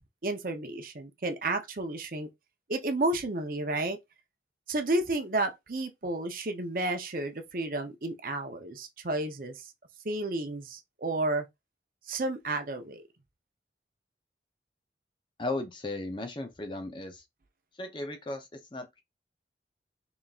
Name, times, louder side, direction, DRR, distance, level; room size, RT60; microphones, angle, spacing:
voice 1, 0.2-2.3 2.7-4.0 4.7-9.7 10.0-11.5 12.1-13.0, right 2 dB, 50° right, 0.7 m, -31 dB
voice 2, 15.4-17.2 17.8-19.0, left 2 dB, 25° left, 0.7 m, -36 dB
4.0 x 3.5 x 2.4 m
head